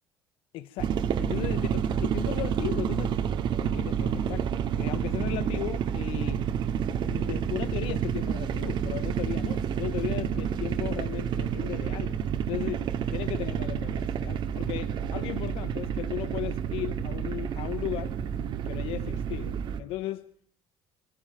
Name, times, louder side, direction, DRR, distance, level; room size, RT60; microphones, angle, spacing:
voice 1, 0.5-3.2 3.5-12.2 12.5-18.2 18.6-20.2, left 14 dB, 75° left, 0.9 m, -36 dB
sound 1, 0.8-19.8, right 8 dB, 55° right, 2.1 m, -29 dB
25.5 x 15.0 x 9.1 m
cardioid pair, 120°, 10 cm